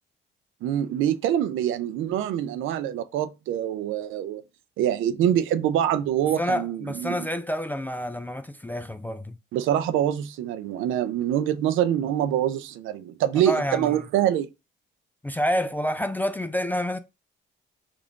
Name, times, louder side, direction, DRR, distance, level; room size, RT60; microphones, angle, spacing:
voice 1, 0.6-4.4 4.8-7.2 9.5-14.5, right 11 dB, 85° right, 0.4 m, -25 dB
voice 2, 6.4-9.4 13.5-14.0 15.2-17.0, equal, 10° left, 0.3 m, -28 dB
3.6 x 2.5 x 3.4 m
cardioid pair, 90°, 20 cm